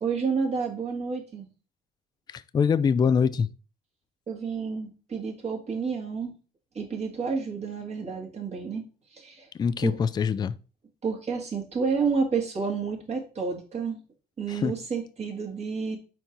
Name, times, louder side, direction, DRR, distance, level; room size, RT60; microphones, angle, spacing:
voice 1, 0.0-1.5 4.3-6.3 6.7-8.8 9.1-9.5 9.8-10.0 11.0-14.0 14.4-16.0, right 5 dB, 40° right, 2.0 m, -30 dB
voice 2, 2.3-3.5 9.5-10.5 14.5-14.7, left 6 dB, 25° left, 0.3 m, -24 dB
4.5 x 4.4 x 5.2 m
cardioid pair, 110°, 17 cm